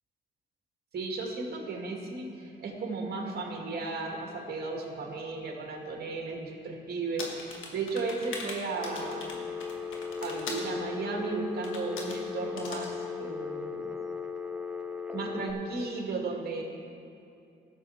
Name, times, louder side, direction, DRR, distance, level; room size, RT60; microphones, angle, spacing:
voice 1, 0.9-9.5 10.2-14.0 15.1-16.6, right 3 dB, 50° right, 0 dB, 2.1 m, -35 dB
sound 1, 7.2-10.7 11.6-12.2 12.6-12.9, left 3 dB, 80° left, 1.5 m, -40 dB
Telephone, 8.8-15.5, left 5 dB, 5° right, 0.7 m, -37 dB
16.0 x 6.9 x 4.2 m, 2.5 s
cardioid pair, 90°, 20 cm